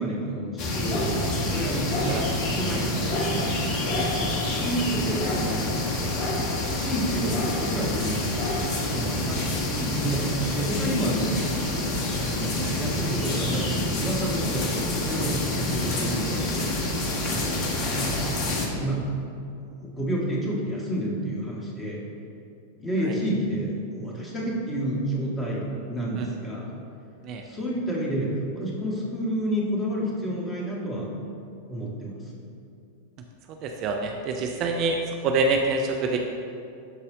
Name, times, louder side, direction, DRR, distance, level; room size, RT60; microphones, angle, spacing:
voice 1, 0.0-3.5 4.2-5.7 6.1-6.3 6.8-8.4 8.9-11.4 11.9-18.1 18.5-19.0 19.8-22.0 22.8-26.7 27.4-31.1 31.7-32.4, right 1 dB, 15° left, -3 dB, 1.8 m, -30 dB
sound 1, 0.6-18.7, left 1 dB, 40° left, 1.1 m, -27 dB
voice 2, 33.6-36.3, right 3 dB, 35° right, 3 dB, 0.5 m, -26 dB
12.0 x 4.1 x 4.0 m, 2.5 s
figure-of-eight pair, 90°, 0 cm